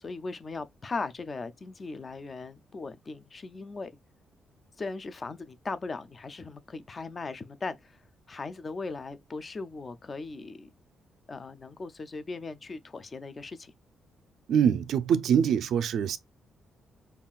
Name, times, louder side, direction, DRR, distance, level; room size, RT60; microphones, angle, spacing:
voice 1, 0.0-3.9 4.8-8.0 8.3-10.7 11.3-13.7, left 3 dB, 25° left, 0.4 m, -38 dB
voice 2, 14.5-16.2, right 8 dB, 60° right, 0.4 m, -24 dB
5.4 x 2.4 x 2.3 m
cardioid pair, 180°, 0 cm